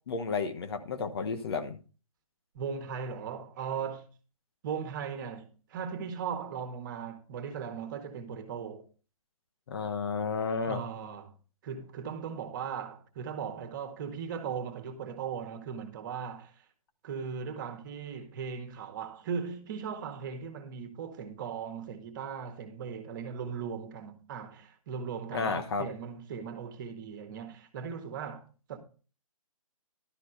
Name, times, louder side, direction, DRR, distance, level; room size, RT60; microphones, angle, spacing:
voice 1, 0.1-1.8 9.7-10.8 25.3-25.9, left 5 dB, 45° left, 1.1 m, -32 dB
voice 2, 2.5-4.1 4.6-8.9 10.7-11.4 11.6-16.5 17.0-28.8, right 6 dB, 35° right, 1.8 m, -38 dB
12.5 x 4.2 x 6.7 m
hypercardioid pair, 150°, 18 cm